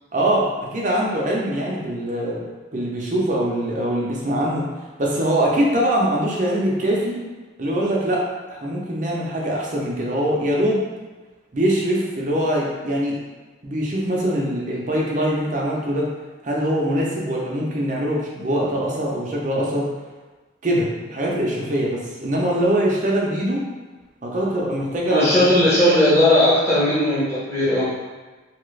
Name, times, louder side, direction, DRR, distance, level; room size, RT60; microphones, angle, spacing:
voice 1, 0.1-2.4 2.7-4.6 5.0-7.2 7.6-8.2 8.5-10.8 11.5-13.2 13.6-16.1 16.4-19.9 20.6-23.6 24.2-25.5, right 1 dB, 40° right, -3 dB, 0.6 m, -22 dB
voice 2, 25.1-27.9, left 1 dB, 15° left, -12 dB, 1.0 m, -17 dB
2.9 x 2.4 x 3.2 m, 1.3 s
head